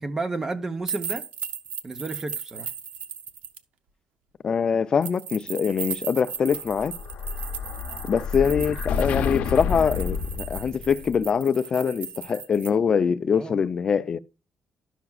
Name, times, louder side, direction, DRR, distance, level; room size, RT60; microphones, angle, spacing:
voice 1, 0.0-1.2 1.8-2.7 13.4-13.6, right 3 dB, 20° right, 0.7 m, -31 dB
sound 1, 0.9-3.6 5.0-12.7, right 7 dB, 80° right, 0.7 m, -37 dB
voice 2, 4.4-6.9 8.1-14.2, left 6 dB, 35° left, 0.4 m, -23 dB
Explosion, 6.5-11.1, left 6 dB, 75° left, 0.7 m, -30 dB
12.0 x 5.9 x 2.3 m
cardioid pair, 170°, 2 cm